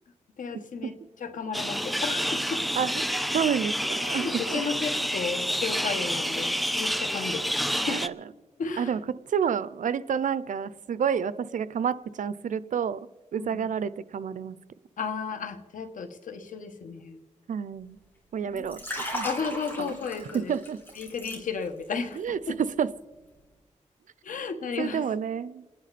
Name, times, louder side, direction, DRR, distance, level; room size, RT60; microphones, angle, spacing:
voice 1, 0.4-0.9 1.2-2.6 4.1-8.0 8.6-8.9 13.4-13.7 15.0-17.2 18.5-18.7 19.2-20.5 21.0-22.6 24.2-25.1, left 5 dB, 85° left, 7 dB, 1.4 m, -34 dB
sound 1, 1.5-8.1, equal, ahead, 0.6 m, -29 dB
voice 2, 2.8-4.6 7.9-8.2 8.8-9.0 9.3-13.0 13.3-14.6 17.5-18.0 18.3-19.3 19.8-20.0 20.3-20.8 22.1-22.9 24.8-25.6, right 7 dB, 75° right, 16 dB, 0.6 m, -29 dB
Liquid, 18.5-21.9 22.2-22.5, equal, 15° left, 5.2 m, -36 dB
29.0 x 10.5 x 4.2 m, 1.3 s
wide cardioid pair, 90°, 13 cm